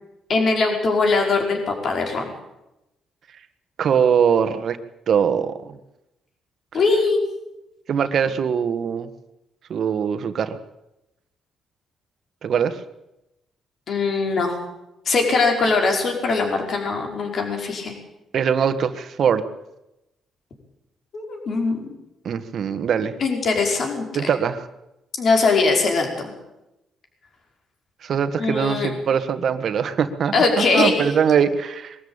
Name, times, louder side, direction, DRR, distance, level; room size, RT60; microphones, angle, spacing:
voice 1, 0.3-2.3 6.7-7.2 13.9-14.6 15.1-17.9 21.1-21.9 23.2-24.1 25.2-26.3 28.4-28.9 30.3-31.1, left 3 dB, 55° left, 2 dB, 5.2 m, -21 dB
voice 2, 3.8-4.8 5.1-5.8 7.9-9.1 9.7-10.6 12.4-12.8 18.3-19.4 22.2-23.1 24.1-24.7 28.0-32.0, right 7 dB, 60° right, 10 dB, 1.6 m, -22 dB
22.0 x 13.5 x 8.9 m, 0.93 s
cardioid pair, 90°, 0 cm